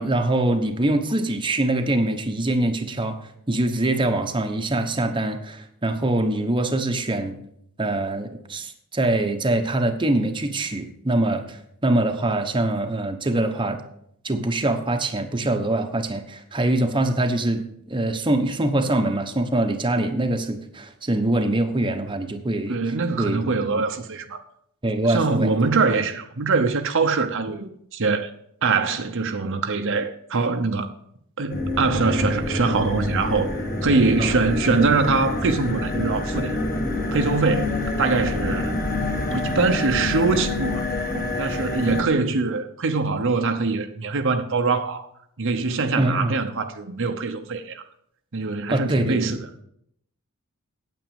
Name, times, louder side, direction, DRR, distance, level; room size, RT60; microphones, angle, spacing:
voice 1, 0.0-7.4 7.8-13.8 14.2-23.5 23.7-23.8 24.8-25.5 34.2-34.4 46.0-46.4 48.7-49.4, right 1 dB, 20° right, 1.0 m, -24 dB
voice 2, 22.7-24.4 25.1-28.3 28.6-30.9 31.4-33.5 33.8-36.6 37.1-38.8 39.3-40.9 41.1-45.1 45.4-47.8 48.3-49.4, right 4 dB, 60° right, 0.9 m, -23 dB
sound 1, 31.5-42.0, left 2 dB, 40° left, 2.3 m, -27 dB
9.1 x 8.6 x 7.1 m
head